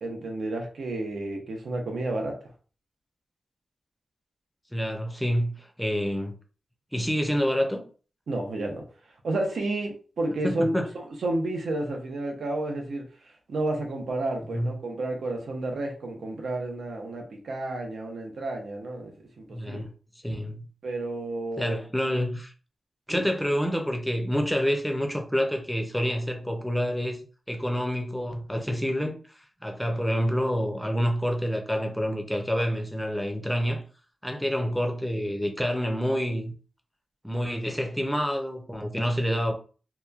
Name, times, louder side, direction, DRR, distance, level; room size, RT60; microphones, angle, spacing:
voice 1, 0.0-2.4 8.3-8.8 9.2-13.0 13.5-19.9 20.8-21.8 23.1-23.3, right 2 dB, 85° right, 0.7 m, -31 dB
voice 2, 4.7-6.4 6.9-7.8 10.4-10.8 14.5-14.7 19.5-19.9 20.2-20.6 21.6-22.5 23.1-27.2 27.5-29.2 29.6-33.8 34.2-36.5 37.2-39.5, equal, ahead, 0.5 m, -27 dB
2.8 x 2.2 x 2.3 m
wide cardioid pair, 130°, 0 cm